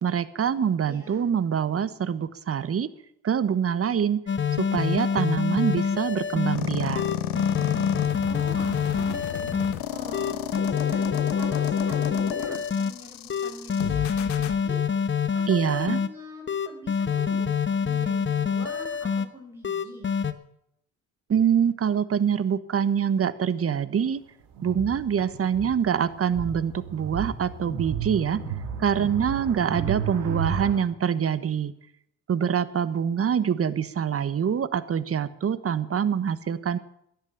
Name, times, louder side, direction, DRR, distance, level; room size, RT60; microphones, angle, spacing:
voice 1, 0.0-2.9 3.2-4.2 4.6-7.0 15.5-16.0 21.3-24.2 24.6-28.4 28.8-31.7 32.3-36.8, right 8 dB, 40° right, 15 dB, 1.2 m, -25 dB
voice 2, 0.8-1.3 8.3-10.4 10.9-14.8 15.1-15.4 15.7-17.5 17.8-20.1 29.7-30.8, right 1 dB, 5° right, -2 dB, 5.0 m, -44 dB
sound 1, 4.3-6.6 7.0-9.7 10.1-12.9 13.3-16.1 16.5-19.3 19.6-20.3, left 6 dB, 35° left, 1.2 m, -26 dB
sound 2, 6.5-14.5, left 11 dB, 75° left, 1.3 m, -32 dB
sound 3, 24.6-30.7, right 8 dB, 70° right, 2.9 m, -33 dB
13.5 x 10.5 x 8.4 m, 0.73 s
hypercardioid pair, 55°, 35 cm